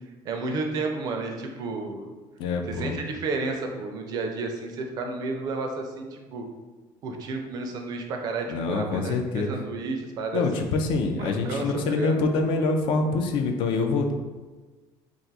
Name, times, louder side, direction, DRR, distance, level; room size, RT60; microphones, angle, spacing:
voice 1, 0.2-2.1 2.6-6.5 7.0-10.7 11.2-12.2, right 3 dB, 40° right, 3 dB, 0.4 m, -32 dB
voice 2, 2.4-2.9 8.5-9.5 10.3-14.1, left 3 dB, 55° left, 4 dB, 0.4 m, -25 dB
2.4 x 2.3 x 3.9 m, 1.3 s
cardioid pair, 165°, 10 cm